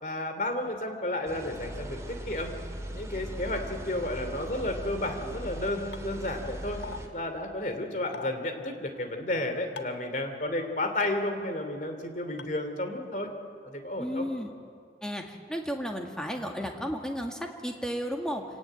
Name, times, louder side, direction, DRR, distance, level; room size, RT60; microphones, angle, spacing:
voice 1, 0.0-2.0 2.3-2.5 2.9-6.8 7.1-13.3 13.6-14.2, left 1 dB, 45° left, 6 dB, 2.9 m, -32 dB
sound 1, 1.2-7.1, equal, 15° right, 2.2 m, -39 dB
sound 2, 5.9-6.0 6.8-7.0 8.1-8.3 9.8-10.0 11.0-11.1 12.4-12.5, left 5 dB, 85° left, 1.4 m, -40 dB
voice 2, 14.0-14.5 15.0-18.4, equal, 5° left, 2 dB, 2.0 m, -33 dB
27.0 x 18.0 x 9.2 m, 2.3 s
head